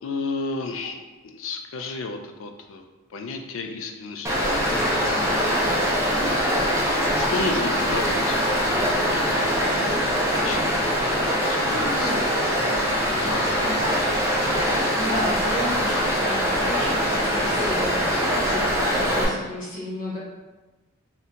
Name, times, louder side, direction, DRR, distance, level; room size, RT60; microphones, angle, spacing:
voice 1, 0.0-2.8 3.1-5.8 7.2-9.6 10.1-10.6 11.4-12.1 12.9-13.5, left 3 dB, 65° left, 5 dB, 0.4 m, -33 dB
Stream, 4.2-19.2, equal, 15° right, 0.6 m, -23 dB
voice 2, 11.9-12.2 13.7-13.8 15.0-20.2, left 1 dB, 40° left, -6 dB, 1.0 m, -32 dB
2.7 x 2.2 x 3.6 m, 1.2 s
head